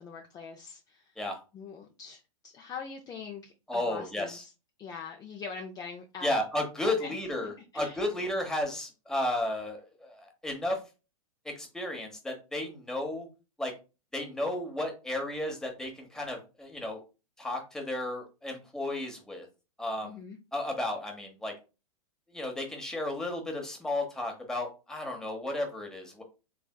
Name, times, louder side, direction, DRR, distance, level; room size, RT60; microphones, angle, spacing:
voice 1, 0.0-1.1 1.5-4.5 4.8-6.4 6.8-7.2 7.7-8.0 20.0-20.4, left 5 dB, 20° left, 3 dB, 0.5 m, -43 dB
voice 2, 3.7-4.4 6.2-10.8 11.4-13.3 13.6-13.7 14.1-17.0 17.4-19.5 19.8-20.2 20.5-21.5 22.3-26.2, left 1 dB, 5° left, 2 dB, 0.9 m, -33 dB
3.4 x 3.4 x 2.2 m, 0.30 s
hypercardioid pair, 115°, 18 cm